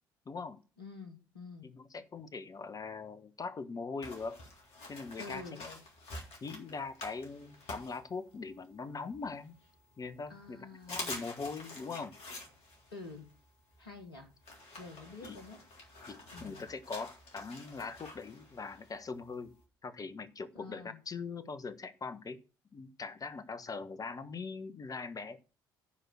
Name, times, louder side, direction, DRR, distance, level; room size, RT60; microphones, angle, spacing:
voice 1, 0.2-0.6 1.6-4.4 4.9-5.8 6.4-9.5 10.0-12.1 15.2-15.4 16.1-19.5 19.8-22.4 22.7-25.4, left 4 dB, 30° left, 11 dB, 1.3 m, -41 dB
voice 2, 0.8-1.7 5.2-5.7 10.3-11.1 12.9-13.3 13.8-14.3 14.8-15.6 16.3-16.6 20.5-21.0, left 3 dB, 80° left, 6 dB, 1.8 m, -48 dB
sound 1, 4.0-8.7 9.1-10.0 10.4-10.5 10.8-19.6, left 2 dB, 60° left, 3.7 m, -48 dB
14.0 x 5.0 x 6.4 m, 0.34 s
figure-of-eight pair, 55°, 12 cm